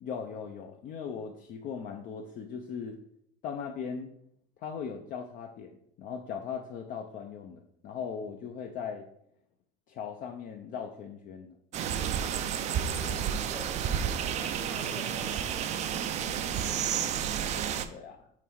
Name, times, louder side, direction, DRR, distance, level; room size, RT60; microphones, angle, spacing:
voice 1, 0.0-3.0 3.4-4.1 4.6-9.1 9.9-11.6 13.9-14.1 17.9-18.3, left 6 dB, 45° left, 3 dB, 0.5 m, -39 dB
sound 1, 11.7-17.8, right 8 dB, 35° right, 0.4 m, -31 dB
voice 2, 12.7-14.0 14.2-16.4, left 4 dB, 20° left, 4 dB, 0.9 m, -47 dB
5.8 x 4.1 x 4.6 m, 0.72 s
cardioid pair, 150°, 20 cm